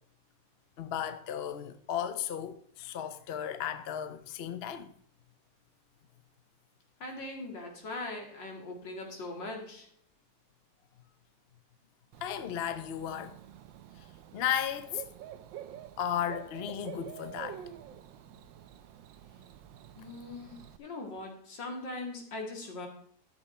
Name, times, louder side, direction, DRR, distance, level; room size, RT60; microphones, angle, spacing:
voice 1, 0.8-4.9 12.2-13.4 14.3-15.0 16.0-17.6, left 9 dB, 50° left, 0.7 m, -35 dB
voice 2, 7.0-9.9 20.0-22.9, left 2 dB, 80° left, 2.8 m, -40 dB
Bird / Cricket, 12.1-20.8, right 10 dB, 90° right, 1.4 m, -48 dB
12.0 x 7.8 x 4.4 m
omnidirectional pair, 2.0 m